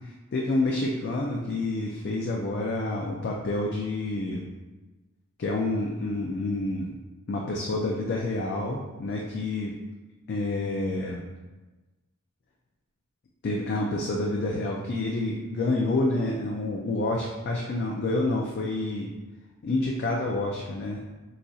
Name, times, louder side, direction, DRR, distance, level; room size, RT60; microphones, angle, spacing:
voice 1, 0.3-4.6 5.4-7.0 7.3-9.8 10.3-11.3 13.4-19.1 19.6-21.0, left 2 dB, 45° left, -1 dB, 0.3 m, -28 dB
4.0 x 2.5 x 2.3 m, 1.2 s
head